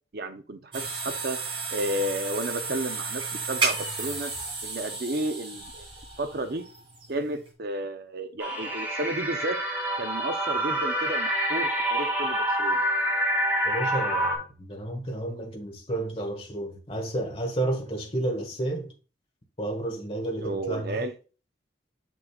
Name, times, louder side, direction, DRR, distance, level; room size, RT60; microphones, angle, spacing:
voice 1, 0.1-1.4 1.7-4.3 4.6-5.9 6.2-6.7 7.1-9.6 10.0-12.8 20.4-21.1, right 1 dB, 55° right, 0.7 m, -32 dB
sound 1, 0.7-7.5, right 4 dB, 30° right, 2.5 m, -33 dB
sound 2, 8.4-14.4, equal, 10° right, 1.6 m, -27 dB
voice 2, 13.6-18.9 19.6-21.1, right 1 dB, 35° left, 1.5 m, -31 dB
6.6 x 6.2 x 2.4 m
head